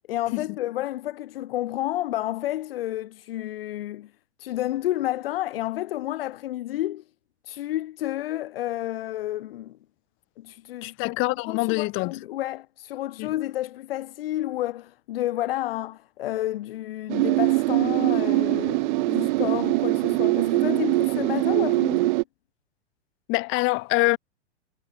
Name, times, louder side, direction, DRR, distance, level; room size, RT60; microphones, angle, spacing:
voice 1, 0.1-4.1 4.4-7.0 7.4-9.8 10.4-22.2, left 14 dB, 55° left, 1.3 m, -30 dB
voice 2, 10.8-12.2 13.2-13.3 23.3-24.2, left 25 dB, 35° left, 2.9 m, -25 dB
sound 1, 17.1-22.2, right 23 dB, 45° right, 1.1 m, -22 dB
figure-of-eight pair, 105°, 34 cm